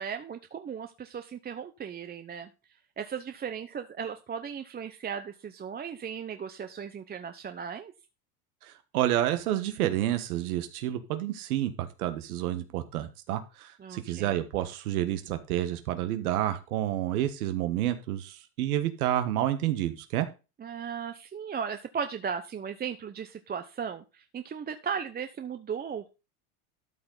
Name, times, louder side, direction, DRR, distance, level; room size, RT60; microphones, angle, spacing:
voice 1, 0.0-2.5 3.0-7.9 13.8-14.4 20.6-26.1, right 7 dB, 20° right, 8 dB, 0.8 m, -36 dB
voice 2, 8.6-20.3, right 12 dB, 85° right, 9 dB, 1.5 m, -29 dB
12.5 x 6.6 x 4.0 m, 0.29 s
supercardioid pair, 110°, 44 cm